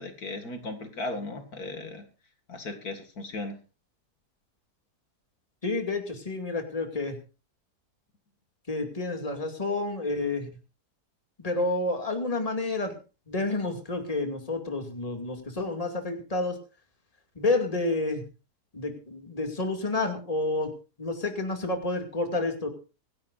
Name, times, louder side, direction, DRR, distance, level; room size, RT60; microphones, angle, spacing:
voice 1, 0.0-2.0 2.5-3.6, left 2 dB, 65° left, 6 dB, 2.5 m, -36 dB
voice 2, 5.6-7.2 8.7-10.5 11.4-13.0 13.3-16.6 17.4-18.2 18.7-20.7 21.0-22.7, left 2 dB, 20° left, 4 dB, 2.6 m, -29 dB
25.5 x 11.5 x 2.6 m, 0.33 s
omnidirectional pair, 1.7 m